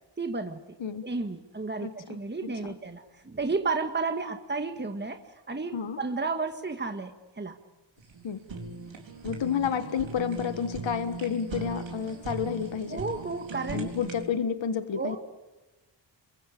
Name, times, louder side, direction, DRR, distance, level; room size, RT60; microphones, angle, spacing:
voice 1, 0.2-0.8 1.0-7.6 12.9-13.9 15.0-15.2, right 3 dB, 25° right, 7 dB, 1.6 m, -32 dB
voice 2, 1.8-2.2 2.6-2.7 5.7-6.0 8.2-8.4 9.2-13.0 13.7-15.2, left 7 dB, 80° left, 10 dB, 1.6 m, -30 dB
Fire, 8.0-14.3, right 3 dB, 90° right, 4.4 m, -39 dB
29.0 x 23.0 x 8.6 m, 1.1 s
cardioid pair, 75°, 44 cm